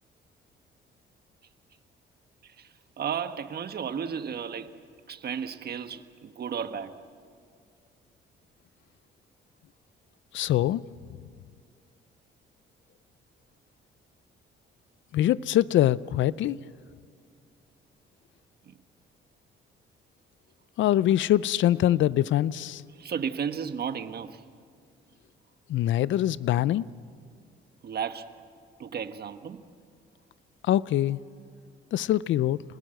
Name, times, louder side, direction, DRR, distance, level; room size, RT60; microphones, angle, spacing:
voice 1, 2.4-4.7 5.1-7.0 18.7-18.8 22.9-24.4 27.8-28.3 28.8-29.6, right 7 dB, 55° right, 1.3 m, -34 dB
voice 2, 10.3-10.8 15.1-16.6 20.8-22.8 25.7-26.9 30.6-31.2 31.9-32.6, left 13 dB, 70° left, 0.5 m, -23 dB
28.5 x 20.0 x 7.8 m
cardioid pair, 90°, 20 cm